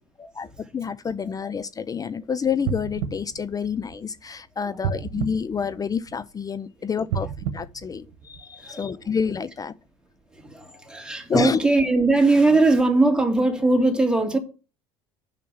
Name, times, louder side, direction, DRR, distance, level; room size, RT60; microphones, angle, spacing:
voice 1, 0.7-9.7 11.3-11.6, left 6 dB, 25° left, 0.5 m, -28 dB
sound 1, 2.6-4.3 4.8-6.4 7.0-8.7 9.3-9.4, right 7 dB, 65° right, 1.2 m, -32 dB
voice 2, 4.7-5.0 8.5-9.2 10.3-14.4, right 2 dB, 5° right, 2.8 m, -21 dB
7.2 x 5.9 x 7.1 m
hypercardioid pair, 65°, 15 cm